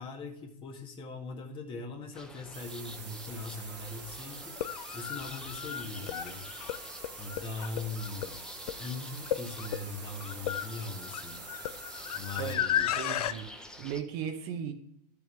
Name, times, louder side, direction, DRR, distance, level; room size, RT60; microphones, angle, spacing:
voice 1, 0.0-4.6 4.9-6.5 7.2-8.4 8.8-11.4 12.2-13.2, left 3 dB, 25° left, 3 dB, 1.8 m, -40 dB
sound 1, 2.1-14.0, left 1 dB, 5° left, 0.9 m, -48 dB
sound 2, 2.5-12.5, right 6 dB, 80° right, 2.0 m, -46 dB
sound 3, 3.3-3.4 4.4-13.3, left 10 dB, 65° left, 0.7 m, -35 dB
voice 2, 12.4-14.7, right 8 dB, 40° right, 5 dB, 1.4 m, -37 dB
12.5 x 7.1 x 3.4 m, 0.73 s
hypercardioid pair, 110°, 21 cm